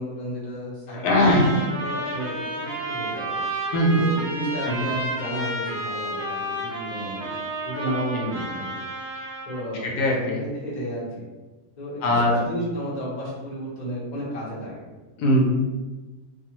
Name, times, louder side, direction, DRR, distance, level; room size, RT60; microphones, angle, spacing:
voice 1, 0.0-3.4 3.9-7.3 7.6-8.7 9.5-9.9 10.4-11.2 11.8-14.8, equal, 35° left, -6 dB, 0.7 m, -33 dB
voice 2, 0.9-1.5 3.7-4.0 4.7-5.0 9.8-10.4 12.0-12.5 15.2-15.4, left 1 dB, 80° left, -1 dB, 1.1 m, -20 dB
Trumpet, 1.1-9.7, right 2 dB, 25° right, 0.6 m, -31 dB
2.6 x 2.3 x 2.8 m, 1.2 s
omnidirectional pair, 1.7 m